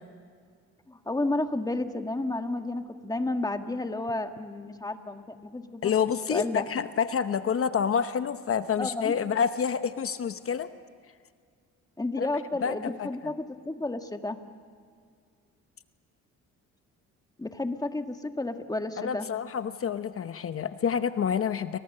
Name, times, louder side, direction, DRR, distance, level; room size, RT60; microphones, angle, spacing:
voice 1, 0.9-5.9 6.3-6.7 8.8-9.2 12.0-14.4 17.4-19.3, left 2 dB, 10° left, 6 dB, 1.7 m, -31 dB
voice 2, 5.8-10.7 12.2-12.3 12.6-13.3 19.0-21.8, left 7 dB, 45° left, 11 dB, 0.9 m, -28 dB
29.5 x 24.5 x 6.7 m, 2.1 s
cardioid pair, 90°, 30 cm